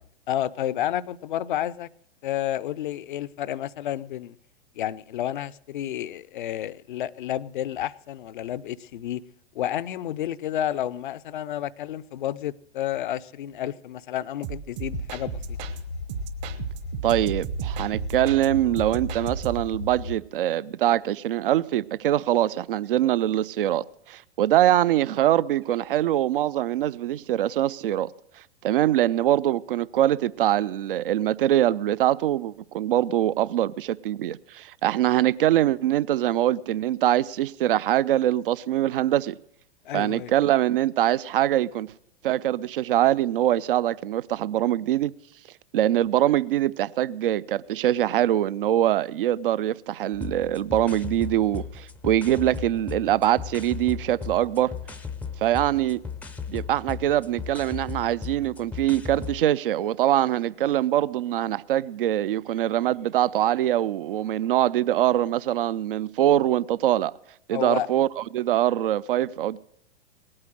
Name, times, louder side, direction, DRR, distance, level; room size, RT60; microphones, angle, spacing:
voice 1, 0.3-1.9 2.2-4.4 4.8-9.2 9.5-15.6 39.8-40.3 67.5-67.9, left 12 dB, 50° left, 0.5 m, -30 dB
sound 1, 14.4-15.8 16.1-18.5 18.8-19.8, right 12 dB, 40° right, 1.1 m, -35 dB
sound 2, 14.9-20.2, left 3 dB, 85° left, 1.1 m, -35 dB
voice 2, 17.0-28.1 28.6-39.4 39.9-41.9 42.2-45.1 45.7-54.7 55.4-56.0 56.5-67.1 67.5-69.6, right 12 dB, 60° right, 0.5 m, -23 dB
sound 3, 50.1-59.4, left 6 dB, 5° left, 0.5 m, -37 dB
19.0 x 8.7 x 6.3 m
figure-of-eight pair, 100°, 32 cm